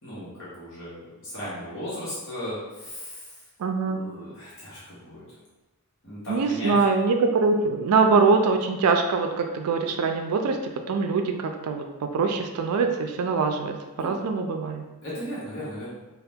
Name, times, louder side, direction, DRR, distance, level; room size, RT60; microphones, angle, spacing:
voice 1, 0.0-3.3 3.8-5.2 6.0-6.7 14.0-14.2 15.0-15.9, equal, 60° left, -10 dB, 1.3 m, -36 dB
voice 2, 3.6-4.0 6.3-14.9, right 4 dB, 85° right, 5 dB, 0.3 m, -23 dB
2.8 x 2.4 x 3.4 m, 1.1 s
head